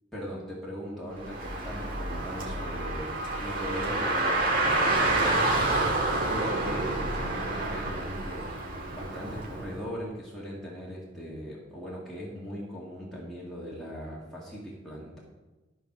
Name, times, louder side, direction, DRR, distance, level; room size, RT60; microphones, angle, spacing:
voice 1, 0.1-15.2, equal, ahead, -7 dB, 1.9 m, -39 dB
Car, 1.1-9.7, right 2 dB, 50° right, 1.8 m, -28 dB
13.0 x 4.7 x 6.0 m, 1.2 s
head